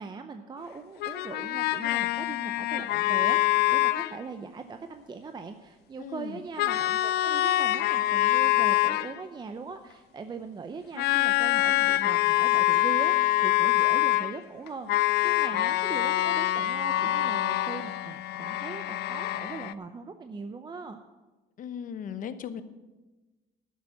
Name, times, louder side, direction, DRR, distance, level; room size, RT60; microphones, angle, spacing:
voice 1, 0.0-21.0, right 4 dB, 25° right, 7 dB, 0.7 m, -40 dB
sound 1, 1.0-4.2 6.6-9.1 11.0-14.4 14.7-19.7, left 15 dB, 75° left, 0.5 m, -25 dB
voice 2, 6.0-6.4 21.6-22.6, left 8 dB, 50° left, 11 dB, 0.9 m, -37 dB
12.0 x 7.1 x 7.7 m, 1.2 s
cardioid pair, 110°, 17 cm